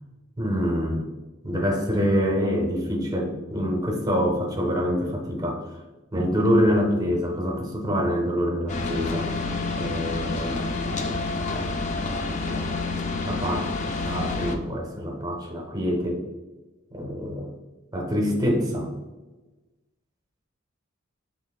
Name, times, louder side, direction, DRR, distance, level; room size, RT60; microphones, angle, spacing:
voice 1, 0.4-1.1 1.4-5.6 6.1-9.3 9.8-11.0 13.2-13.7 14.0-16.2 16.9-17.5 17.9-18.9, equal, 20° right, 1 dB, 0.6 m, -25 dB
sound 1, 8.7-14.6, left 3 dB, 35° left, 0.3 m, -28 dB
4.5 x 3.2 x 2.3 m, 1.2 s
head